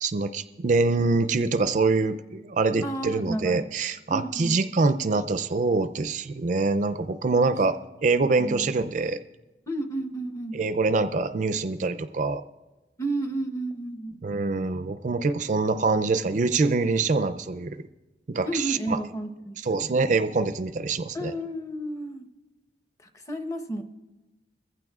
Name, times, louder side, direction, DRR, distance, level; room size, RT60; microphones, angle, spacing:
voice 1, 0.0-9.2 10.5-12.4 14.2-17.8 18.3-19.0 19.6-21.3, right 3 dB, 40° right, 11 dB, 0.4 m, -25 dB
voice 2, 2.8-3.7 4.1-4.5 8.4-8.6 9.7-10.6 13.0-14.2 14.6-14.7 18.4-19.8 21.1-22.3 23.3-23.8, right 1 dB, 15° left, 6 dB, 0.8 m, -32 dB
22.5 x 15.0 x 2.4 m, 1.1 s
head